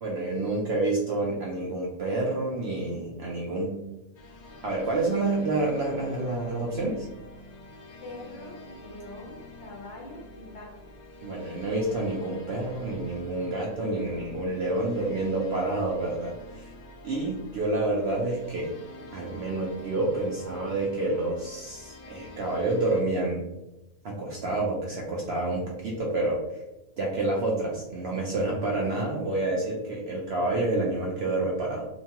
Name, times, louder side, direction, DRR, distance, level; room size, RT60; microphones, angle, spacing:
voice 1, 0.0-3.8 4.6-7.1 11.2-16.7 17.0-18.7 19.1-23.5 24.0-26.6 27.0-31.8, right 2 dB, 65° right, -3 dB, 0.6 m, -28 dB
sound 1, 4.1-23.0, left 1 dB, 85° left, 0.3 m, -47 dB
voice 2, 8.0-10.7, left 1 dB, 60° left, -3 dB, 1.0 m, -43 dB
2.9 x 2.2 x 2.8 m, 0.99 s
omnidirectional pair, 1.4 m